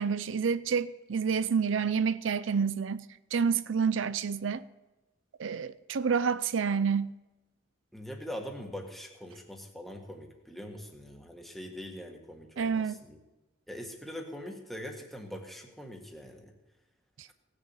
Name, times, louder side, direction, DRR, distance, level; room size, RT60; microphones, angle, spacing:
voice 1, 0.0-3.1 3.3-4.6 5.4-7.1 12.6-13.0 17.2-17.3, right 6 dB, 80° right, 0.5 m, -28 dB
voice 2, 7.9-13.2 13.7-16.5, equal, ahead, 1.7 m, -42 dB
17.5 x 7.1 x 8.1 m
head